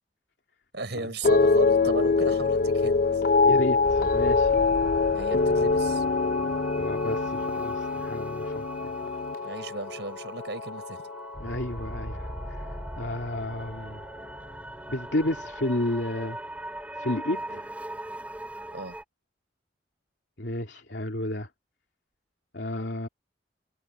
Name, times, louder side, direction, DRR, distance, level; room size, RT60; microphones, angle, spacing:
voice 1, 0.7-3.2 5.1-6.0 9.4-11.1 18.7-18.9, right 3 dB, 75° right, 4.9 m, -36 dB
sound 1, 1.2-11.6 11.9-12.5, left 4 dB, 50° left, 0.5 m, -24 dB
voice 2, 3.4-4.5 6.8-8.6 11.4-12.7 13.0-14.0 14.9-16.4 17.0-17.7 20.4-21.5 22.5-23.1, left 1 dB, 75° left, 2.7 m, -32 dB
sound 2, 3.8-19.0, right 1 dB, 10° right, 2.2 m, -39 dB
head